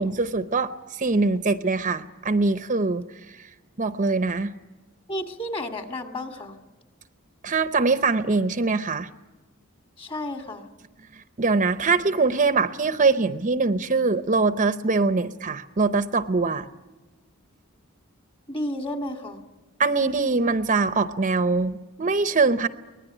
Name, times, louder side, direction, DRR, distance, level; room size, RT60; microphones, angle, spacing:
voice 1, 0.0-3.5 3.8-4.5 7.4-9.1 11.1-16.7 19.8-22.7, right 3 dB, 35° right, 11 dB, 0.7 m, -23 dB
voice 2, 5.1-6.6 10.0-10.7 18.5-19.4, left 1 dB, 25° left, 5 dB, 2.2 m, -32 dB
24.0 x 19.5 x 10.0 m, 1.2 s
head